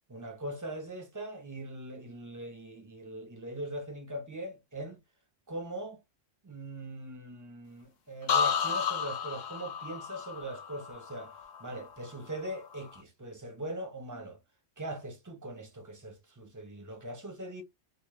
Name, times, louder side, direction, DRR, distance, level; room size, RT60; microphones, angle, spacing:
voice 1, 0.1-5.0 5.5-6.0 6.4-14.4 14.8-17.6, right 1 dB, 20° right, 0.7 m, -41 dB
sound 1, 8.3-12.1 12.5-12.9, left 7 dB, 55° left, 0.5 m, -32 dB
3.4 x 2.1 x 3.1 m
omnidirectional pair, 1.1 m